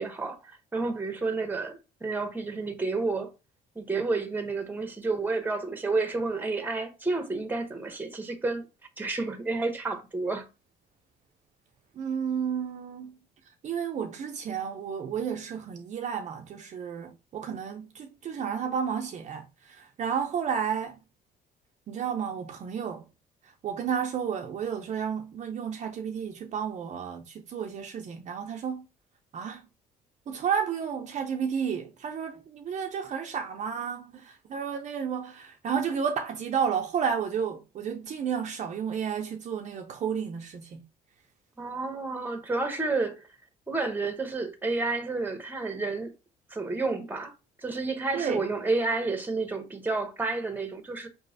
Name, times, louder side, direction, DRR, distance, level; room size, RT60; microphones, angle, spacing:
voice 1, 0.0-3.3 3.7-8.6 9.0-10.5 41.6-43.3 43.7-46.1 46.5-47.3 47.6-51.1, right 3 dB, 10° right, 0.9 m, -30 dB
voice 2, 12.0-13.2 13.6-21.0 21.9-23.1 23.4-28.8 29.3-29.7 30.3-40.8 48.1-48.4, right 7 dB, 45° right, 0.5 m, -32 dB
4.7 x 3.0 x 2.6 m
cardioid pair, 110°, 17 cm